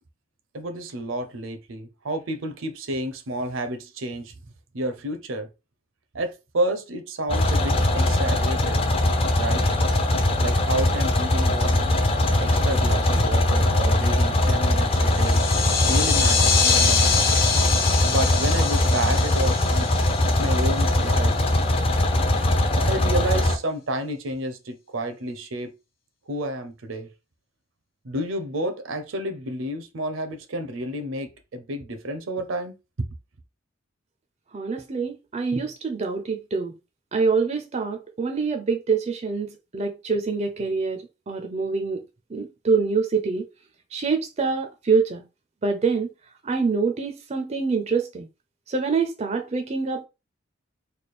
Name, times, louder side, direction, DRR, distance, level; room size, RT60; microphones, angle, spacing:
voice 1, 0.5-4.3 4.7-5.5 6.1-8.8 9.3-9.7 10.4-11.9 12.4-15.4 15.9-17.3 18.0-19.9 20.3-21.3 22.7-25.7 26.3-27.1 28.0-32.7, right 1 dB, 70° right, 0.6 m, -30 dB
sound 1, 7.3-23.6, left 1 dB, 25° left, 0.4 m, -21 dB
sound 2, 15.0-21.1, left 5 dB, 45° left, 0.9 m, -25 dB
voice 2, 34.5-36.7 37.1-42.0 42.3-43.4 43.9-45.2 45.6-46.1 46.4-48.3 48.7-50.0, right 4 dB, 30° right, 0.4 m, -25 dB
3.3 x 2.2 x 4.2 m
head